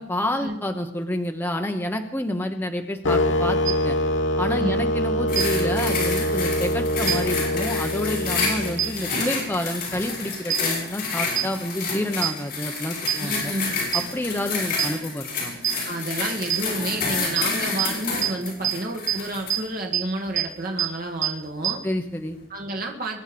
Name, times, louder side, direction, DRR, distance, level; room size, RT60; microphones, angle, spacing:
voice 1, 0.0-4.0 4.4-13.5 13.9-15.5 21.8-22.4, left 1 dB, 10° left, 3 dB, 1.1 m, -29 dB
sound 1, 3.0-9.1, left 1 dB, 90° left, 1.0 m, -24 dB
sound 2, 3.7-3.8 5.4-5.5 7.1-7.2 8.8-8.9 10.5-10.6 11.4-11.5 12.2-12.3 13.1-13.2 13.9-14.0 14.8-14.9 15.6-15.7 16.5-16.6 17.4-17.5 17.8-17.9 18.2-18.3 18.6-18.7 19.1-19.2 19.5-19.6 19.9-20.0 20.4-20.5 20.8-20.9 21.2-21.3 21.6-21.7, right 11 dB, 75° right, 1.2 m, -22 dB
sound 3, 5.3-19.6 20.2-20.4, left 4 dB, 50° left, 7.8 m, -29 dB
voice 2, 13.2-13.8 15.8-21.8 22.5-23.2, right 2 dB, 50° right, 1 dB, 1.8 m, -30 dB
23.5 x 9.9 x 5.2 m, 0.79 s
head